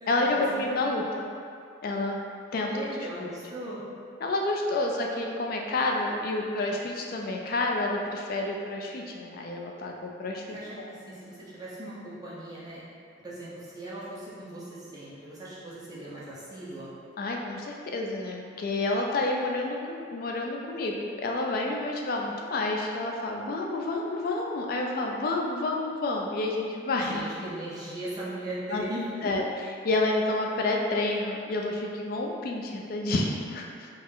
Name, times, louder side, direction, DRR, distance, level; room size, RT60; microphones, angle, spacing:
voice 1, 0.1-1.3 1.8-2.2 2.5-2.8 3.2-3.3 4.2-10.9 17.2-27.5 28.7-28.8 29.2-33.9, left 2 dB, 45° left, 0 dB, 0.3 m, -29 dB
voice 2, 2.7-3.8 10.5-12.8 13.2-16.9 27.0-29.3, right 1 dB, 20° right, -9 dB, 0.7 m, -38 dB
3.8 x 2.0 x 3.8 m, 2.3 s
head